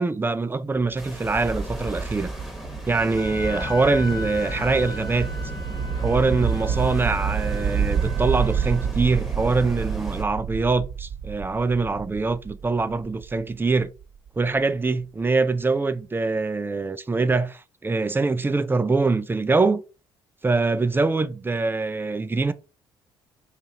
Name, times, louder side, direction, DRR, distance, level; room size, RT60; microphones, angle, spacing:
voice 1, 0.0-2.3 2.9-5.3 6.0-13.9 14.4-19.8 20.4-22.5, right 3 dB, 15° right, 0.4 m, -23 dB
Large Low Rumble Passing, 0.9-14.5, right 7 dB, 40° right, 1.0 m, -29 dB
sound 1, 1.0-10.2, right 1 dB, ahead, 1.2 m, -35 dB
Wind instrument woodwind instrument, 3.2-8.9, left 2 dB, 35° left, 1.1 m, -39 dB
2.8 x 2.5 x 4.2 m
hypercardioid pair, 50°, 13 cm